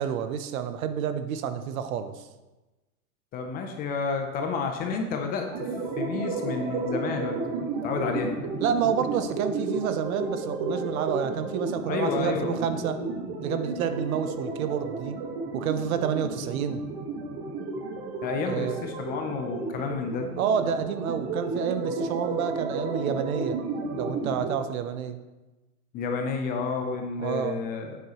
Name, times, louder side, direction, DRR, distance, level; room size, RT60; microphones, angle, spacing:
voice 1, 0.0-2.3 8.6-13.0 13.4-15.2 15.5-16.8 18.4-18.8 20.4-23.6 24.0-25.2 27.2-27.6, right 8 dB, 65° right, 10 dB, 0.9 m, -29 dB
voice 2, 3.3-5.5 6.0-8.3 11.9-12.6 18.2-20.3 25.9-28.0, left 5 dB, 20° left, 4 dB, 0.6 m, -30 dB
sound 1, 5.5-24.5, right 3 dB, 45° right, 1.5 m, -32 dB
9.2 x 8.2 x 3.0 m, 1.1 s
hypercardioid pair, 140°, 45 cm